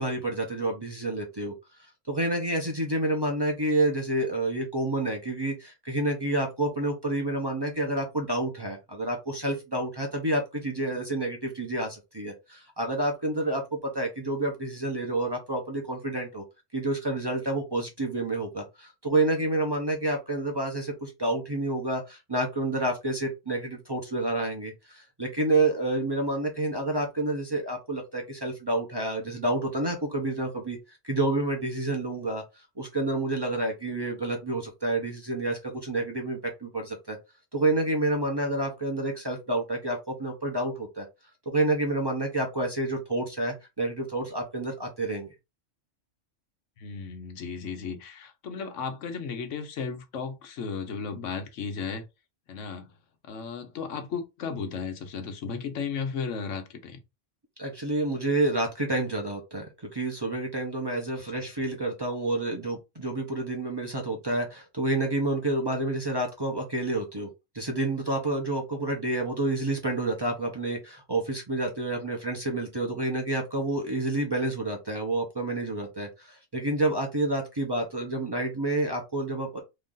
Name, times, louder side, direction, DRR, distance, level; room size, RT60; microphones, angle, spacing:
voice 1, 0.0-16.4 16.7-32.4 32.8-37.2 37.5-41.1 41.5-45.3 57.6-67.3 67.5-79.6, right 2 dB, 25° right, 0.7 m, -29 dB
voice 2, 46.8-52.0 52.5-52.9 53.2-57.0, left 5 dB, 85° left, 1.1 m, -35 dB
3.1 x 2.6 x 3.7 m
omnidirectional pair, 1.2 m